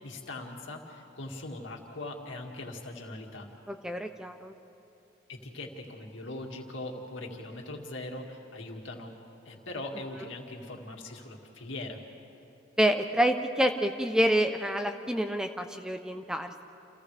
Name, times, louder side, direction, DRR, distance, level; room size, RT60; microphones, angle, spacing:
voice 1, 0.0-3.5 5.3-9.1 9.4-12.0, left 2 dB, 75° left, 1 dB, 2.2 m, -41 dB
voice 2, 3.7-4.5 12.8-16.6, equal, 5° right, 6 dB, 0.5 m, -27 dB
29.5 x 28.0 x 3.4 m, 2.9 s
head